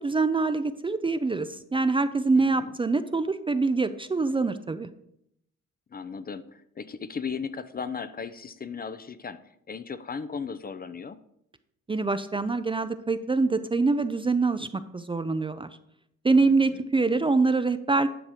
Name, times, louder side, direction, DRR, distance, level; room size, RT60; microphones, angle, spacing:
voice 1, 0.0-4.9 11.9-15.7 16.2-18.1, right 3 dB, 15° right, 10 dB, 0.5 m, -25 dB
voice 2, 2.3-2.7 5.9-11.2 16.4-16.8, left 5 dB, 30° left, 12 dB, 0.6 m, -36 dB
10.0 x 6.0 x 5.0 m, 0.76 s
cardioid pair, 90°, 30 cm